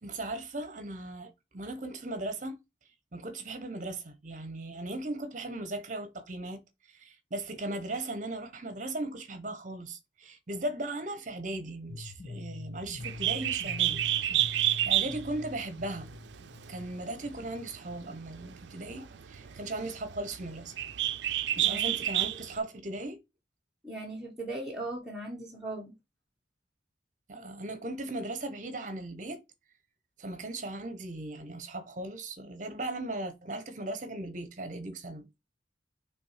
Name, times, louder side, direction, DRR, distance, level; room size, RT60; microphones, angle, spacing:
voice 1, 0.0-2.6 3.1-6.6 6.9-16.1 16.7-20.7 21.6-23.2 27.3-29.4 30.2-35.3, right 2 dB, 45° right, 0.9 m, -38 dB
sound 1, 11.9-17.9, left 3 dB, 35° left, 0.9 m, -45 dB
Bird, 13.0-22.6, right 13 dB, 75° right, 0.4 m, -31 dB
voice 2, 21.6-21.9 23.8-25.9, right 2 dB, 5° right, 1.3 m, -38 dB
5.9 x 3.3 x 4.9 m
head